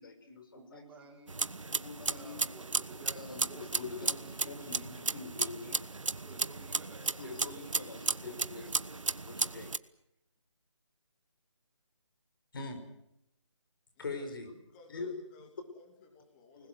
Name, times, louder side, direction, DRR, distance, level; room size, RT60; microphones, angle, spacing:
voice 1, 0.0-0.9 1.7-2.4 3.1-5.8 7.2-8.6 9.3-9.7 12.5-12.8 14.0-14.5 14.9-15.1 16.6-16.7, left 4 dB, 45° left, 7 dB, 5.3 m, -43 dB
voice 2, 0.5-1.4 2.1-4.9 6.1-8.7, right 3 dB, 5° right, -3 dB, 4.3 m, -54 dB
sound 1, 1.3-9.8, right 3 dB, 85° right, 1.2 m, -35 dB
voice 3, 14.0-14.3 14.5-16.7, left 4 dB, 15° left, 4 dB, 2.8 m, -57 dB
28.5 x 20.5 x 8.0 m, 0.79 s
figure-of-eight pair, 160°, 16 cm